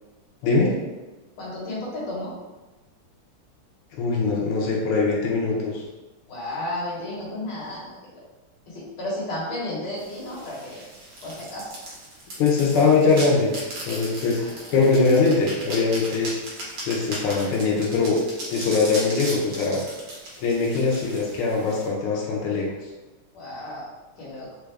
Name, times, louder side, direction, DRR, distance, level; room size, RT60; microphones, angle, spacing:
voice 1, 0.4-0.7 4.0-5.8 12.4-13.5 13.9-16.3 16.9-18.2 18.5-19.8 20.4-22.7, left 4 dB, 90° left, -3 dB, 1.6 m, -22 dB
voice 2, 1.4-2.3 6.3-7.9 8.7-10.8 11.2-11.7 14.4-14.6 23.3-23.9 24.2-24.5, left 1 dB, 60° left, -6 dB, 1.7 m, -33 dB
sound 1, 10.0-21.9, right 1 dB, 65° right, 1.7 m, -37 dB
4.2 x 2.3 x 3.2 m, 1.2 s
omnidirectional pair, 2.4 m